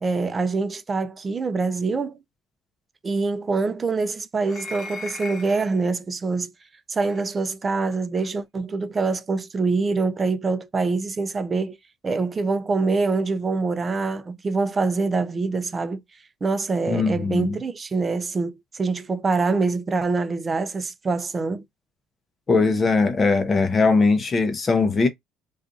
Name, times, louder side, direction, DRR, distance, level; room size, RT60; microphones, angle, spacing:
voice 1, 0.0-2.2 3.0-6.5 6.9-11.8 12.0-16.0 16.4-21.6, right 4 dB, 25° right, 0.4 m, -25 dB
sound 1, 4.5-5.8 7.1-7.2 8.2-8.3, left 3 dB, 50° left, 1.0 m, -38 dB
voice 2, 16.9-17.5 22.5-25.1, left 4 dB, 30° left, 0.7 m, -20 dB
2.6 x 2.4 x 2.3 m
cardioid pair, 105°, 0 cm